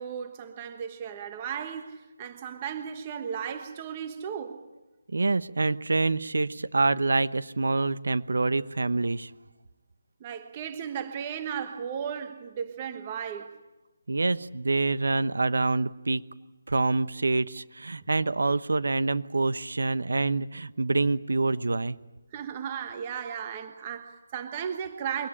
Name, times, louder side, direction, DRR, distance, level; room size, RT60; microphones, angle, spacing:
voice 1, 0.0-4.6 10.2-13.5 22.3-25.3, right 8 dB, 15° right, 1.2 m, -35 dB
voice 2, 5.1-9.3 14.1-16.2 16.7-22.0, right 3 dB, 75° right, 1.0 m, -26 dB
23.5 x 17.5 x 9.9 m
hypercardioid pair, 180°, 0 cm